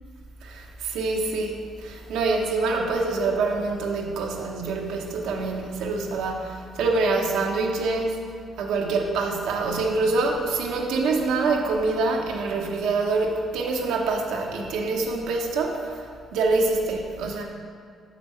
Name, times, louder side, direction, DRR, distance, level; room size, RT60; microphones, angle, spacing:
voice 1, 0.4-8.2 8.6-16.0 16.3-17.4, right 3 dB, 90° right, 0 dB, 0.9 m, -25 dB
6.0 x 5.1 x 5.4 m, 2.2 s
cardioid pair, 90°, 0 cm